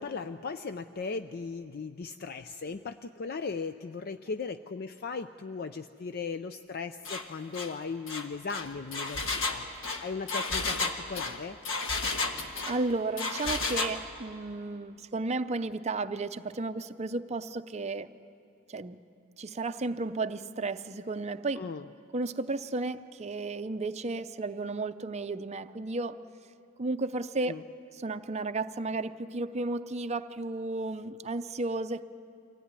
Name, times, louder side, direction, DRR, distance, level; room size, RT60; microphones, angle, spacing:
voice 1, 0.0-9.7 10.0-11.6 21.6-21.8 27.5-27.6, left 4 dB, 45° left, 9 dB, 0.4 m, -37 dB
Engine, 7.1-7.3 7.5-7.7 8.1-12.8 13.2-14.0, left 3 dB, 65° left, 1.5 m, -32 dB
voice 2, 12.6-18.1 18.7-19.0 19.4-21.6 22.1-26.2 26.8-27.6 28.0-32.1, right 3 dB, 30° right, 9 dB, 0.6 m, -33 dB
24.5 x 16.5 x 9.7 m, 2.6 s
head